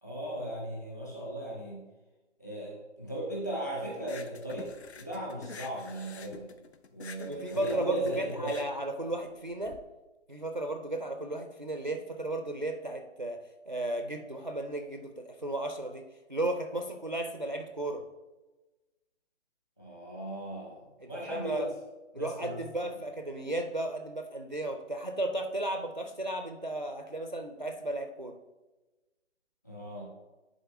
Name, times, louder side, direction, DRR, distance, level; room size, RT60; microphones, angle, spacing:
voice 1, 0.0-1.8 2.4-4.7 5.0-6.5 6.9-8.6 19.8-21.7 22.1-22.6 29.6-30.1, right 1 dB, 15° left, -5 dB, 0.9 m, -37 dB
sound 1, 4.0-9.8, left 5 dB, 60° left, 0.6 m, -48 dB
voice 2, 7.3-9.8 10.3-13.4 13.7-16.0 16.3-18.0 21.0-21.7 22.1-28.3, right 1 dB, 40° right, 5 dB, 0.4 m, -34 dB
10.5 x 3.8 x 3.5 m, 1.1 s
hypercardioid pair, 180°, 36 cm